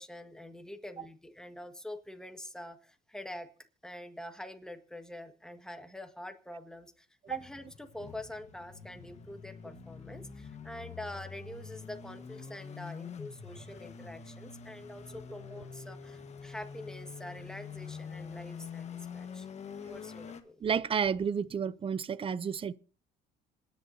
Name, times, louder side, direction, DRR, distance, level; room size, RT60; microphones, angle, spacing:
voice 1, 0.0-3.5 3.8-19.5 19.8-20.5, left 1 dB, 5° left, 1.7 m, -45 dB
sound 1, 7.3-20.4, left 6 dB, 40° left, 1.4 m, -46 dB
voice 2, 20.6-22.7, right 7 dB, 30° right, 0.6 m, -31 dB
26.5 x 10.5 x 2.7 m
cardioid pair, 110°, 17 cm